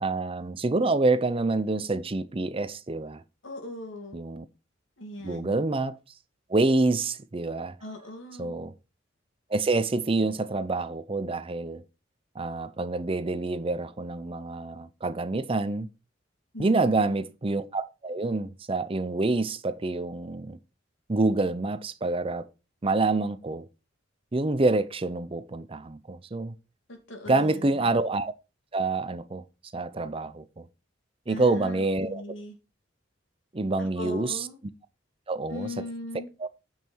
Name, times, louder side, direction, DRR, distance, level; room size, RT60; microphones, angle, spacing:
voice 1, 0.0-3.2 4.1-4.5 5.2-6.0 6.5-7.8 8.4-8.7 9.5-11.8 12.4-15.9 16.6-20.6 21.1-22.5 22.8-23.7 24.3-26.5 27.3-28.3 28.7-29.4 29.7-30.7 31.3-32.2 33.5-34.4 35.3-35.7 36.4-36.5, right 3 dB, 30° right, 0.6 m, -27 dB
voice 2, 3.4-4.2 5.0-5.5 7.8-8.6 16.5-17.1 26.9-28.0 31.3-32.6 33.8-34.6 35.5-36.3, left 2 dB, 80° left, 2.7 m, -39 dB
9.0 x 5.5 x 4.5 m
head